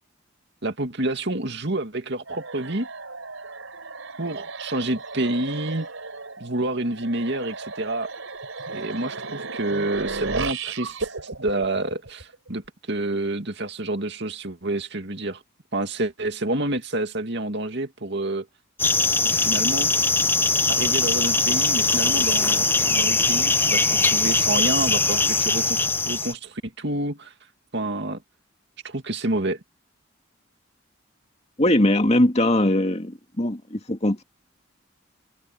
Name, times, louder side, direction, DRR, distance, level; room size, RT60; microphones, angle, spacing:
voice 1, 0.6-2.9 4.2-5.9 6.4-8.1 8.7-15.4 15.7-18.5 19.2-19.9 20.7-27.3 27.7-28.2 28.8-29.6, right 2 dB, 55° right, 2.5 m, -28 dB
sound 1, 2.3-12.5, right 4 dB, 80° right, 4.3 m, -35 dB
sound 2, 18.8-26.3, left 3 dB, 10° left, 0.6 m, -21 dB
voice 2, 31.6-34.2, left 1 dB, 30° left, 2.3 m, -21 dB
head